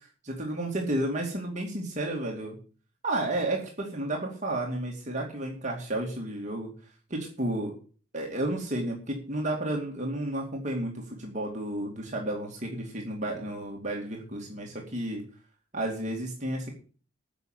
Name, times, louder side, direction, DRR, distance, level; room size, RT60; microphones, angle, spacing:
voice 1, 0.2-2.6 3.0-6.7 7.1-7.8 8.1-15.2 15.7-16.7, right 1 dB, 35° right, 0 dB, 2.5 m, -32 dB
10.5 x 6.4 x 9.1 m, 0.40 s
head